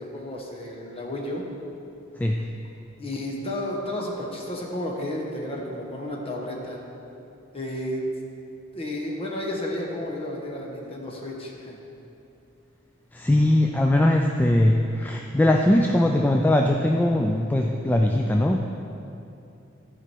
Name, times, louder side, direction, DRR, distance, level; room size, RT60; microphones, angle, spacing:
voice 1, 0.0-1.4 3.0-6.8 7.5-8.0 8.7-11.8, left 1 dB, 30° left, -1 dB, 1.3 m, -32 dB
voice 2, 13.1-18.6, left 1 dB, 10° left, 1 dB, 0.3 m, -20 dB
14.0 x 5.0 x 4.6 m, 2.8 s
head